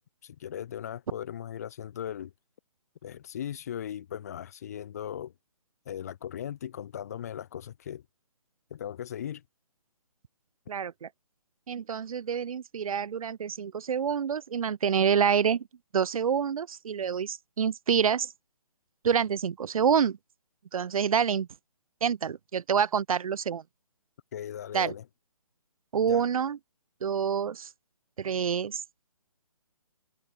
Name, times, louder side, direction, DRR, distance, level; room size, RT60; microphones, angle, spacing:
voice 1, 0.0-2.3 3.0-5.3 5.9-8.0 8.7-9.4 24.3-25.0 26.1-26.2, left 10 dB, 25° left, 0.5 m, -38 dB
voice 2, 10.7-11.1 11.7-15.6 15.9-18.3 19.0-20.2 20.7-21.5 22.0-23.6 24.7-24.9 25.9-26.6 27.0-27.7 28.2-28.8, right 7 dB, 70° right, 0.5 m, -27 dB
hypercardioid pair, 155°, 19 cm